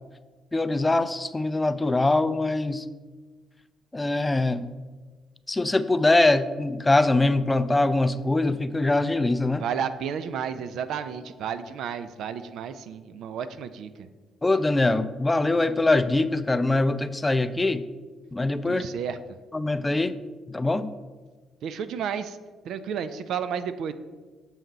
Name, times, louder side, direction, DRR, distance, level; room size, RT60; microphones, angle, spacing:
voice 1, 0.5-2.8 3.9-4.7 5.5-9.6 14.4-17.8 18.3-18.8 19.5-20.2 20.5-20.9, left 2 dB, 20° left, 12 dB, 0.4 m, -23 dB
voice 2, 9.6-14.1 18.7-19.2 21.6-22.4 22.6-23.9, right 7 dB, 65° right, 11 dB, 0.3 m, -32 dB
7.1 x 2.7 x 5.6 m, 1.4 s
hypercardioid pair, 45°, 0 cm